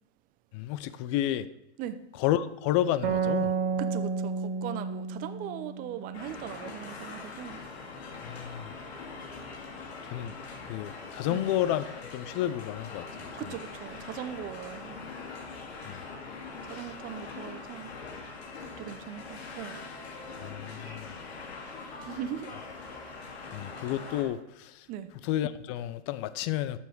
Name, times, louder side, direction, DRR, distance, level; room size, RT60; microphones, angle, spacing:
voice 1, 0.5-1.5 2.2-3.5 8.2-8.7 10.0-10.4 10.6-13.3 15.8-16.0 16.7-16.8 20.4-21.1 23.5-24.9 25.2-26.8, left 12 dB, 30° left, 0.4 m, -31 dB
sound 1, 3.0-6.5, right 5 dB, 60° right, 1.8 m, -31 dB
voice 2, 3.8-7.6 11.3-11.5 13.4-15.0 16.7-17.9 18.8-19.8 22.0-22.5 24.9-25.1, right 11 dB, 25° right, 0.7 m, -39 dB
sound 2, 6.1-24.2, left 4 dB, 70° left, 2.5 m, -42 dB
12.0 x 7.2 x 4.5 m
hypercardioid pair, 135°, 33 cm